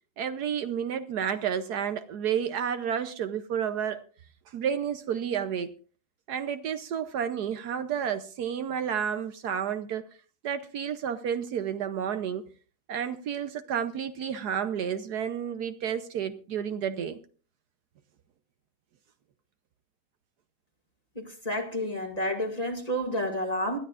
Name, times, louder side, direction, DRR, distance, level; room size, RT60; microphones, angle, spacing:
voice 1, 0.2-4.0 4.5-5.7 6.3-10.1 10.4-12.4 12.9-17.2, right 8 dB, 70° right, 1.3 m, -31 dB
voice 2, 21.2-23.8, equal, 20° left, 2.1 m, -30 dB
21.0 x 13.0 x 2.5 m
omnidirectional pair, 1.9 m